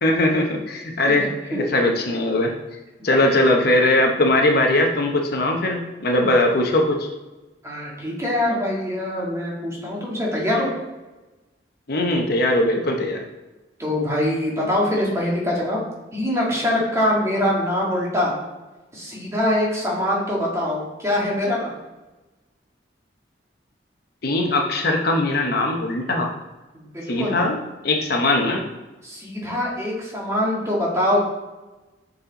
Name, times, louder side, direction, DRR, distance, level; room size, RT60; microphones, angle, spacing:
voice 1, 0.0-2.5 3.0-7.1 11.9-13.2 24.2-26.3 27.1-27.6 27.8-28.6, left 1 dB, 55° left, 2 dB, 0.8 m, -20 dB
voice 2, 3.0-3.4 7.6-10.7 13.8-15.8 16.1-18.4 18.9-21.8 26.7-27.4 29.0-31.3, left 1 dB, 15° right, -4 dB, 1.8 m, -23 dB
6.7 x 4.2 x 3.9 m, 1.1 s
head